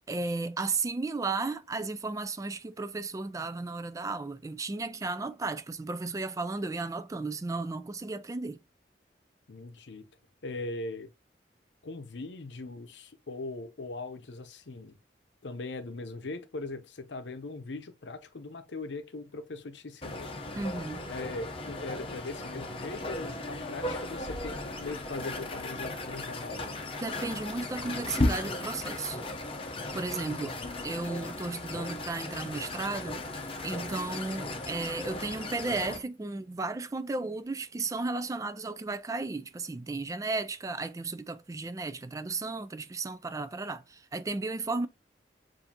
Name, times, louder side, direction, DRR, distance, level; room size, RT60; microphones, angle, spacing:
voice 1, 0.1-8.6 20.5-21.1 27.0-29.2 29.9-33.2 33.6-44.9, right 3 dB, 20° right, 0.3 m, -34 dB
voice 2, 9.5-10.1 10.4-11.1 11.8-15.0 15.4-20.3 21.1-26.7 30.1-30.5, left 3 dB, 85° left, 0.7 m, -40 dB
sound 1, 20.0-36.0, left 2 dB, 30° left, 0.7 m, -36 dB
7.0 x 2.6 x 2.8 m
head